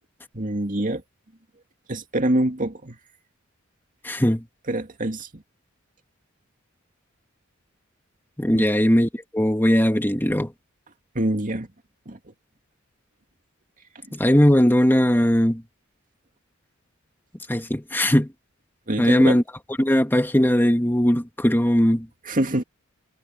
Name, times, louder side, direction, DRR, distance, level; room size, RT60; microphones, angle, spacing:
voice 1, 0.3-1.0 1.9-3.0 4.7-5.4 8.5-8.7 11.1-11.7 12.1-12.2 18.9-19.4 22.2-22.6, right 1 dB, 40° right, 2.4 m, -25 dB
voice 2, 4.0-4.4 8.4-10.5 14.1-15.6 17.5-18.3 19.0-19.4 19.8-22.1, equal, 10° left, 2.2 m, -19 dB
head